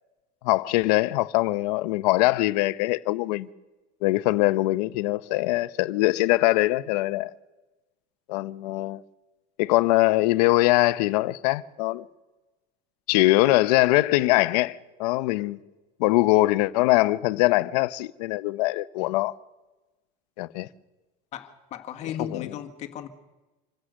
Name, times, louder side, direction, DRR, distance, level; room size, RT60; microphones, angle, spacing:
voice 1, 0.4-3.5 4.0-7.3 8.3-9.0 9.6-12.1 13.1-15.6 16.0-19.3 20.4-20.7 22.2-22.4, left 19 dB, 85° left, 0.8 m, -22 dB
voice 2, 21.3-23.1, left 9 dB, 35° left, 1.7 m, -36 dB
26.5 x 16.0 x 6.4 m
cardioid pair, 170°, 20 cm